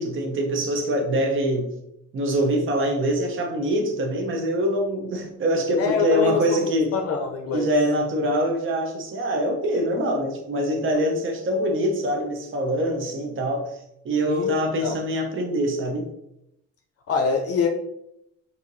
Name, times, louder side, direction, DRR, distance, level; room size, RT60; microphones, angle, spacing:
voice 1, 0.0-1.7 2.1-6.9 7.5-13.8 14.0-16.1, equal, 45° right, 3 dB, 0.7 m, -24 dB
voice 2, 5.8-7.7 14.3-14.5 14.8-15.0 17.1-17.7, left 6 dB, 50° left, 3 dB, 0.5 m, -25 dB
4.4 x 2.7 x 2.6 m, 0.80 s
cardioid pair, 90°, 30 cm